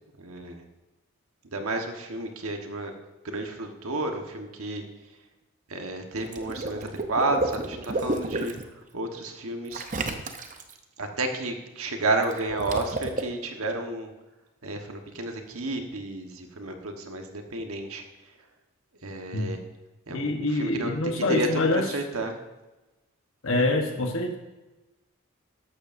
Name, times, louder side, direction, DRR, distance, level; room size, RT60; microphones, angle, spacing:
voice 1, 0.2-0.6 1.5-2.9 3.2-4.8 5.7-8.5 8.9-9.8 11.0-14.1 14.6-18.0 19.0-19.6 20.1-22.4, right 2 dB, 80° right, 4 dB, 1.3 m, -31 dB
Water / Liquid, 6.2-8.6 9.7-10.7 12.2-13.2, right 2 dB, 35° right, 0.7 m, -31 dB
voice 2, 20.1-21.8 23.4-24.4, left 2 dB, 70° left, 3 dB, 1.1 m, -25 dB
14.0 x 11.5 x 2.6 m, 1.1 s
head